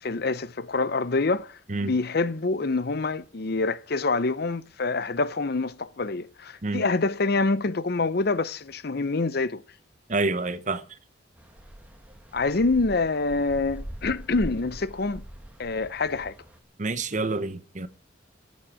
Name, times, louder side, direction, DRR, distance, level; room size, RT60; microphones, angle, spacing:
voice 1, 0.0-9.6 12.3-15.2 15.6-16.3, left 3 dB, 55° left, 0.6 m, -26 dB
voice 2, 10.1-11.0 16.8-17.9, right 3 dB, 40° right, 1.0 m, -28 dB
sound 1, 11.4-16.6, equal, 10° right, 1.9 m, -42 dB
15.0 x 7.4 x 8.9 m
head